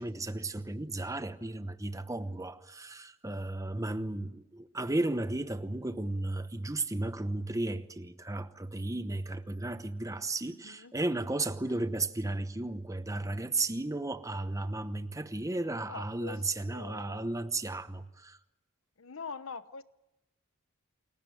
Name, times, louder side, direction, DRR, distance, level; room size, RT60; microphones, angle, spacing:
voice 1, 0.0-18.4, right 2 dB, 15° right, 0.9 m, -34 dB
voice 2, 10.5-10.9 11.5-11.8 15.9-17.5 19.0-19.8, left 5 dB, 65° left, 1.0 m, -45 dB
28.5 x 16.5 x 9.2 m
head